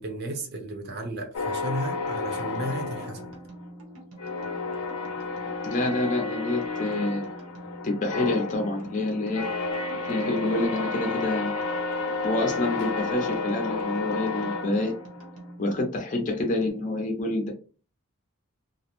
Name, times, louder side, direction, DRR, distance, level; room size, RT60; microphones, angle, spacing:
voice 1, 0.0-3.4, right 1 dB, 50° right, 4 dB, 0.6 m, -34 dB
sound 1, 1.3-3.8 4.2-15.4, left 3 dB, 90° left, 0.5 m, -31 dB
sound 2, 2.3-16.7, right 1 dB, 80° right, 0.8 m, -46 dB
voice 2, 5.6-7.2 7.8-9.5 10.1-11.5 12.2-14.9 15.6-17.5, left 2 dB, 35° left, 1 dB, 0.5 m, -27 dB
2.4 x 2.0 x 2.9 m, 0.37 s
head